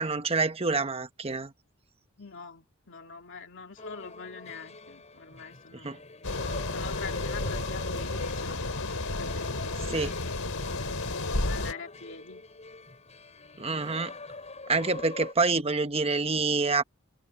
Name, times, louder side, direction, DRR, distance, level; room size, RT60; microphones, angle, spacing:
voice 1, 0.0-1.5 5.8-6.0 9.9-10.1 13.6-14.1 14.7-16.8, right 3 dB, 30° right, 1.0 m, -27 dB
voice 2, 2.2-5.9 6.7-10.5 11.4-12.4, left 5 dB, 60° left, 2.8 m, -44 dB
sound 1, 3.8-15.3, left 3 dB, 30° left, 6.8 m, -45 dB
sound 2, 6.2-11.7, left 2 dB, 80° left, 3.7 m, -32 dB
head